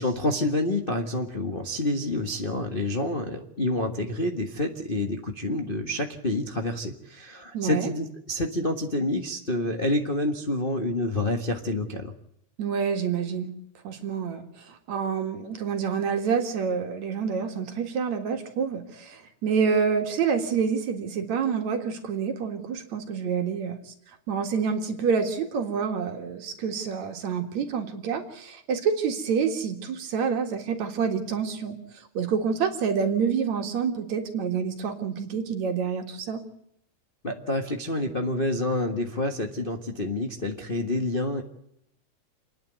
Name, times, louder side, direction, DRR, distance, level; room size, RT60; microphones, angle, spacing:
voice 1, 0.0-12.1 37.2-41.4, left 1 dB, 30° left, 2 dB, 0.9 m, -28 dB
voice 2, 7.5-7.9 12.6-13.5 13.8-23.9 24.3-31.8 32.1-36.4, right 6 dB, 65° right, 5 dB, 3.1 m, -27 dB
28.5 x 10.5 x 9.3 m, 0.76 s
omnidirectional pair, 3.6 m